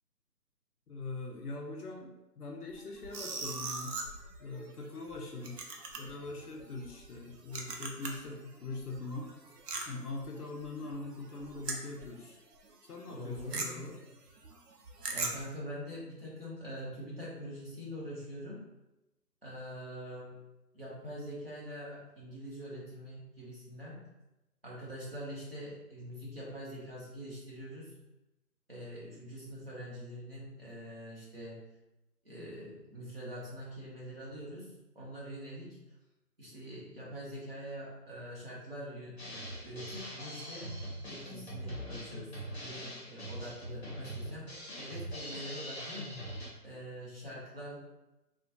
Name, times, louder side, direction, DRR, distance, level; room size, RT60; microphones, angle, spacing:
voice 1, 0.9-4.0 4.4-5.6 6.0-9.3 9.9-12.4 12.8-14.0, left 3 dB, 65° left, 1 dB, 0.5 m, -42 dB
sound 1, 2.7-8.4 8.6-12.3 12.6-12.7 13.0-15.5, right 3 dB, 75° right, 0.6 m, -41 dB
voice 2, 13.1-13.9 15.1-18.6 19.4-20.4 20.7-24.0 24.6-27.9 28.7-31.6 32.2-35.8 36.4-46.1 46.6-47.8, equal, 35° right, -7 dB, 0.7 m, -44 dB
Drum kit, 39.2-46.5, equal, 40° left, 0.9 m, -42 dB
2.4 x 2.1 x 2.7 m, 0.99 s
figure-of-eight pair, 170°, 49 cm